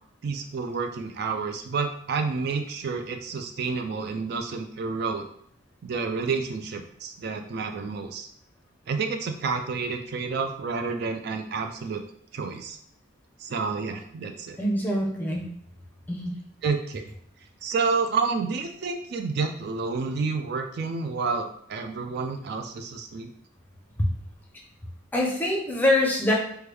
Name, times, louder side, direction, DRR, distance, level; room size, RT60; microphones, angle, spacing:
voice 1, 0.2-5.3 5.8-8.3 8.9-12.0 12.3-12.8 13.4-14.6 16.6-17.1 17.6-23.3, right 4 dB, 55° right, 5 dB, 0.3 m, -29 dB
voice 2, 14.6-15.5 16.1-16.3 24.0-24.1 25.1-26.3, left 1 dB, 10° left, -1 dB, 0.5 m, -24 dB
3.1 x 2.2 x 3.3 m, 0.67 s
head